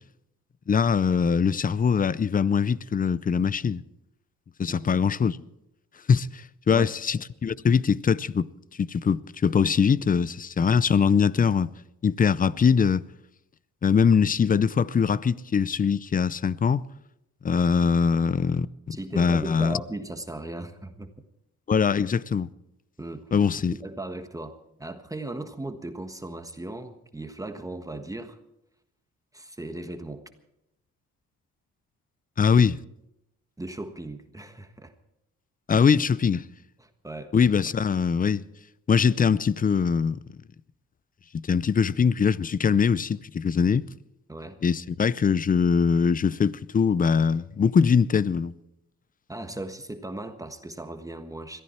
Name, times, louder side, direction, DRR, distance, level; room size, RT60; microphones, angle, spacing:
voice 1, 0.7-3.8 4.6-5.4 6.1-8.5 8.8-11.7 12.0-13.1 13.8-16.8 17.4-19.8 21.7-22.5 23.3-23.7 32.4-32.8 35.7-36.4 37.3-38.4 38.9-40.2 41.3-43.9 44.6-48.5, left 6 dB, 30° left, 0.6 m, -22 dB
voice 2, 18.9-21.1 23.0-23.3 23.8-28.4 29.3-30.2 33.6-34.9 35.7-35.8 36.8-37.4 44.3-44.6 49.3-51.6, right 2 dB, 10° right, 1.4 m, -37 dB
21.5 x 14.5 x 4.4 m
cardioid pair, 90°, 30 cm